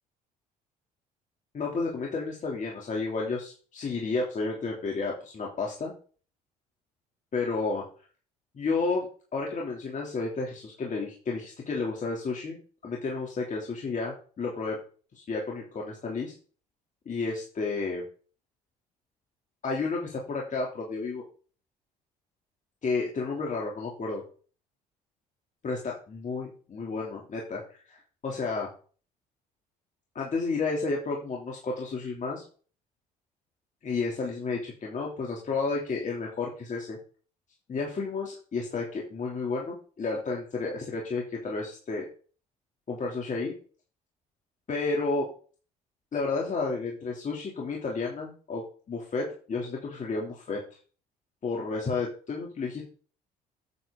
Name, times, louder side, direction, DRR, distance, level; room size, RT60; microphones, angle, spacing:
voice 1, 1.5-5.9 7.3-7.8 8.5-9.1 9.3-12.6 12.8-14.8 15.2-16.3 17.0-18.0 19.6-21.2 22.8-24.2 25.6-27.6 27.9-28.7 30.1-32.4 33.8-37.0 37.7-42.0 42.9-43.5 44.7-45.3 46.1-50.6 51.4-52.8, left 4 dB, 40° left, -2 dB, 3.1 m, -31 dB
9.6 x 7.6 x 3.9 m, 0.40 s
hypercardioid pair, 60°, 19 cm